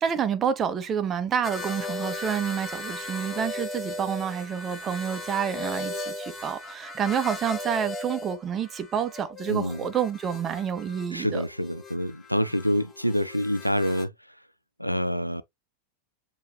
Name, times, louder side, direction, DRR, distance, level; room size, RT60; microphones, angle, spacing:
voice 1, 0.0-11.4, right 8 dB, 25° right, 0.7 m, -28 dB
sound 1, 1.4-14.0, left 2 dB, 20° left, 1.2 m, -37 dB
voice 2, 9.5-9.8 11.1-14.1 14.8-15.4, equal, 90° left, 0.3 m, -27 dB
6.5 x 2.9 x 2.2 m
figure-of-eight pair, 90°, 0 cm